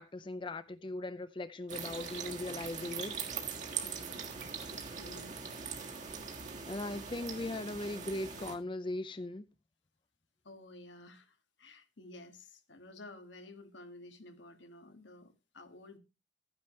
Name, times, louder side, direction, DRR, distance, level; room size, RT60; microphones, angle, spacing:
voice 1, 0.0-3.2 6.7-9.4, left 2 dB, 25° left, 0.5 m, -39 dB
sound 1, 1.7-8.5, right 6 dB, 40° right, 1.7 m, -41 dB
voice 2, 3.8-4.4 4.8-5.4 10.4-16.0, left 2 dB, 85° left, 1.7 m, -53 dB
12.0 x 9.8 x 3.1 m
head